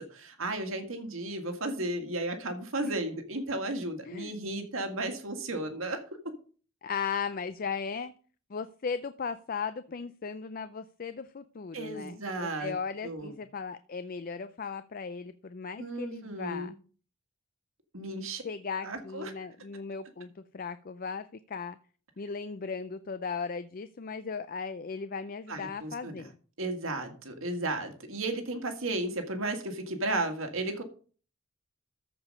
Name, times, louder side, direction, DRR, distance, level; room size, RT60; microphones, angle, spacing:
voice 1, 0.0-6.0 11.7-12.7 13.0-13.3 15.8-16.7 17.9-18.4 18.8-19.3 25.5-26.2 26.6-30.8, right 2 dB, 80° right, 6 dB, 1.9 m, -34 dB
voice 2, 6.8-8.1 8.5-16.7 18.1-21.8 22.2-26.3, left 5 dB, 45° left, 12 dB, 0.4 m, -37 dB
14.0 x 5.0 x 5.3 m, 0.41 s
head